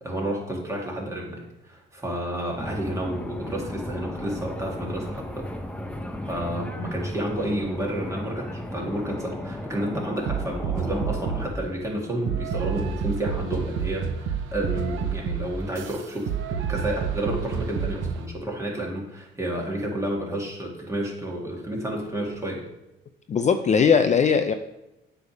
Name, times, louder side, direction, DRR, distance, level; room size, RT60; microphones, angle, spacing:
voice 1, 0.0-5.5 6.3-22.6, right 1 dB, 15° right, -2 dB, 2.1 m, -31 dB
sound 1, 2.6-11.5, left 1 dB, 5° left, 0.7 m, -35 dB
sound 2, 10.3-11.6 12.3-18.2, right 6 dB, 80° right, 0.7 m, -29 dB
voice 2, 23.3-24.5, left 6 dB, 35° left, 8 dB, 0.4 m, -19 dB
8.0 x 3.5 x 5.9 m, 0.92 s
cardioid pair, 90°, 20 cm